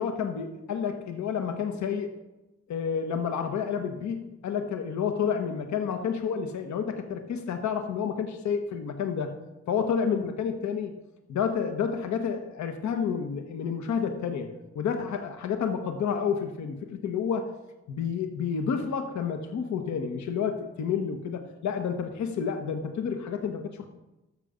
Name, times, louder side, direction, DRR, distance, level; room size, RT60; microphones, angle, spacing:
voice 1, 0.0-2.1 2.7-9.3 9.7-10.9 11.3-17.5 17.9-23.8, left 6 dB, 75° left, 6 dB, 1.2 m, -30 dB
13.5 x 7.0 x 5.1 m, 1.0 s
cardioid pair, 95°, 29 cm